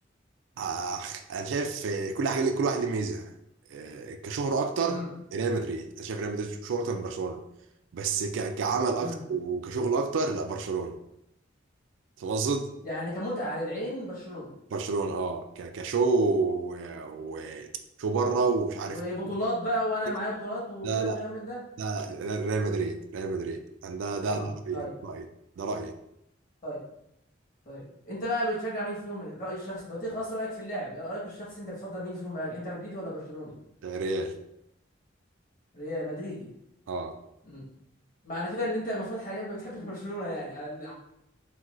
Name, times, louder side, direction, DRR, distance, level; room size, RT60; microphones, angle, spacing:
voice 1, 0.6-3.3 3.7-5.0 5.3-7.4 7.9-11.0 12.2-12.7 14.7-17.7 18.0-19.0 20.8-21.2 21.8-25.2 25.6-25.9 33.8-34.3 36.9-37.1, right 4 dB, 75° right, 7 dB, 0.3 m, -29 dB
voice 2, 12.8-14.5 18.9-21.6 24.3-24.9 26.6-26.8 27.6-33.6 35.7-36.5 37.5-37.7 38.2-40.9, equal, 45° left, -6 dB, 1.3 m, -34 dB
4.1 x 2.3 x 2.4 m, 0.80 s
head